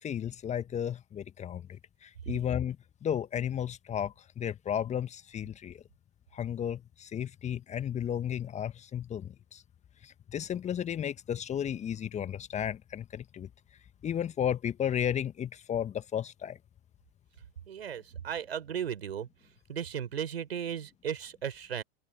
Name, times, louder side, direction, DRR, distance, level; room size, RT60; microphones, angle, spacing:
voice 1, 0.0-2.8 3.0-5.8 6.3-9.6 10.0-13.5 14.0-16.6, left 9 dB, 20° left, 1.7 m, -33 dB
voice 2, 17.7-19.3 19.7-21.8, right 8 dB, 70° right, 5.6 m, -35 dB
figure-of-eight pair, 100°, 32 cm